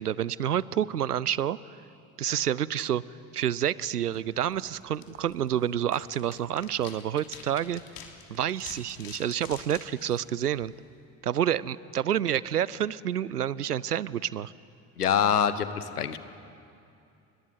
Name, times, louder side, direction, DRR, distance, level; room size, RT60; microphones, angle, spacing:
voice 1, 0.0-1.6 2.2-3.0 3.3-7.8 8.3-10.7 11.2-14.5, right 10 dB, 90° right, 21 dB, 0.5 m, -28 dB
sound 1, 4.0-11.0, left 7 dB, 50° left, 3.2 m, -49 dB
voice 2, 15.0-16.2, left 8 dB, 85° left, 13 dB, 1.1 m, -25 dB
30.0 x 21.0 x 8.1 m, 2.6 s
figure-of-eight pair, 55°, 45 cm